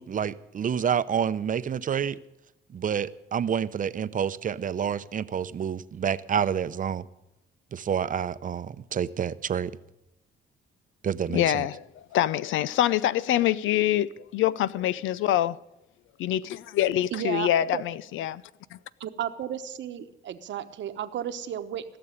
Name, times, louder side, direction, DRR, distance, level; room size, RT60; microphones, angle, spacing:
voice 1, 0.0-2.2 2.7-7.0 7.7-9.8 11.0-11.7, right 8 dB, 40° right, 0.7 m, -28 dB
voice 2, 11.3-11.8 12.1-15.6 16.2-18.4 18.7-18.8, left 12 dB, 80° left, 0.5 m, -25 dB
voice 3, 17.1-17.8 19.0-21.8, right 10 dB, 65° right, 1.1 m, -33 dB
16.5 x 6.9 x 9.8 m
cardioid pair, 90°, 20 cm